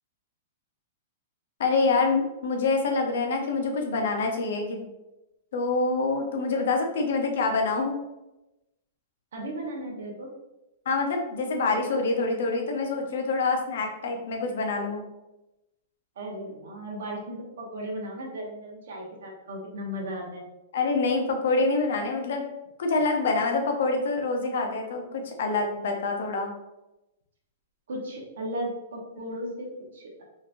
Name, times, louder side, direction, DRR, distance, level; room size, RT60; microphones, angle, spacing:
voice 1, 1.6-4.9 5.5-8.0 10.9-15.0 20.7-22.4 22.8-26.5, left 3 dB, 65° left, 2 dB, 0.7 m, -26 dB
voice 2, 9.3-10.3 16.2-20.4 27.9-30.3, equal, 80° right, 0 dB, 1.1 m, -36 dB
3.8 x 3.0 x 2.6 m, 0.96 s
hypercardioid pair, 165°, 0 cm